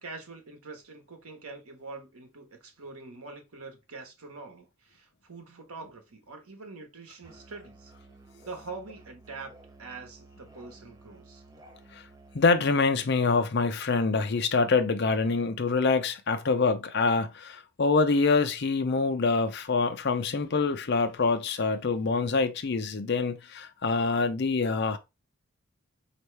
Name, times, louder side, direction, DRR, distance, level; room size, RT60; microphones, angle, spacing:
voice 1, 0.0-7.9 8.5-9.5 9.8-11.4, right 3 dB, 85° right, 1.1 m, -44 dB
Musical instrument, 7.2-12.8, right 2 dB, 15° right, 0.6 m, -53 dB
voice 2, 12.3-25.0, left 4 dB, 50° left, 0.5 m, -25 dB
4.5 x 2.9 x 3.2 m
head